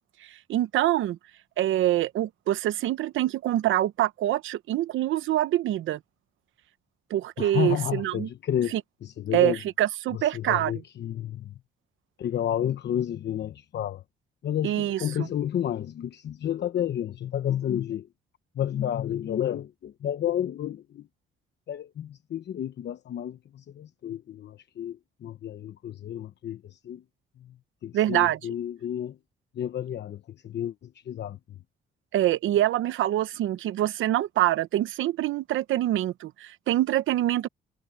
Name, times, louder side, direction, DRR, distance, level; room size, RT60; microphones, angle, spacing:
voice 1, 0.5-1.2 1.6-6.0 7.1-8.3 8.7-8.8 9.3-10.7 14.6-15.3 27.9-28.4 32.1-37.5, right 13 dB, 80° right, 1.0 m, -25 dB
voice 2, 7.4-9.6 10.1-11.5 12.2-14.0 14.4-18.1 18.5-21.1 21.7-27.0 27.4-27.5 27.8-29.2 29.5-31.4, left 10 dB, 60° left, 1.1 m, -31 dB
cardioid pair, 90°, 20 cm